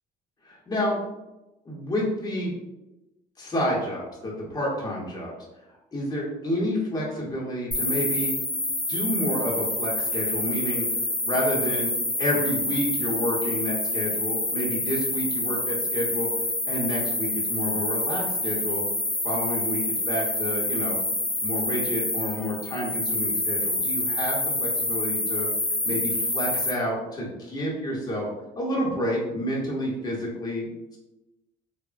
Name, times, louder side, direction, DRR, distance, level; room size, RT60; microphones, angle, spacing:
voice 1, 0.4-1.0 1.6-2.5 3.4-5.3 5.9-8.3 8.9-11.0 11.2-16.3 16.7-18.8 19.2-21.0 21.4-25.5 25.8-28.3 28.5-31.0, equal, 25° left, -4 dB, 0.8 m, -29 dB
sound 1, 7.7-26.7, left 2 dB, 5° left, 0.3 m, -27 dB
3.0 x 2.1 x 2.4 m, 0.98 s
cardioid pair, 110°, 17 cm